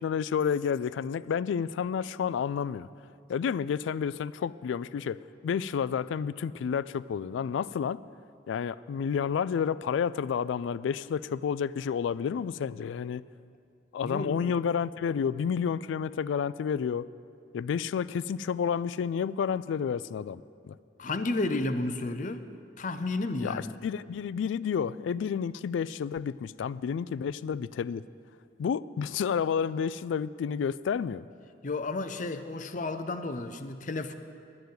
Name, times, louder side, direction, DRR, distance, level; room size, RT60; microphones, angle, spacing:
voice 1, 0.0-2.9 3.3-8.0 8.5-13.2 13.9-17.1 17.5-20.7 23.4-28.0 28.6-31.3, left 7 dB, 90° left, 18 dB, 0.3 m, -30 dB
voice 2, 14.0-14.5 21.0-22.4 22.8-23.7 31.6-34.1, left 2 dB, 45° left, 9 dB, 0.6 m, -32 dB
11.0 x 6.8 x 9.4 m, 2.4 s
head